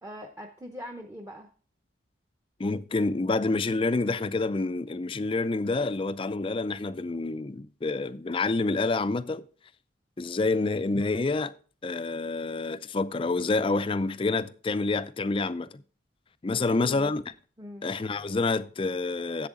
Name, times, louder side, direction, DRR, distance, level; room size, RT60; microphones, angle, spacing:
voice 1, 0.0-1.5 16.5-17.1 17.6-17.9, equal, 15° right, 0.7 m, -41 dB
voice 2, 2.6-9.4 10.2-11.5 11.8-15.7 16.4-17.2 17.8-19.5, left 3 dB, 25° left, 0.4 m, -28 dB
11.0 x 7.9 x 3.7 m
head